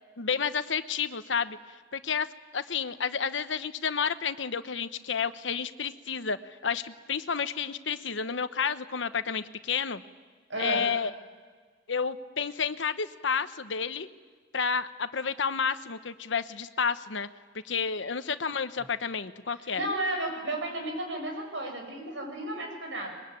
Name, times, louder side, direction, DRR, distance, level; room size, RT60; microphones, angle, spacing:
voice 1, 0.2-1.6 1.9-2.3 2.5-10.0 10.6-11.1 11.9-14.1 14.5-17.3 17.6-19.9, left 6 dB, 75° left, 11 dB, 1.0 m, -30 dB
voice 2, 10.5-10.8 19.8-23.1, right 1 dB, 80° right, 2 dB, 6.9 m, -33 dB
24.0 x 22.0 x 9.1 m, 1.5 s
head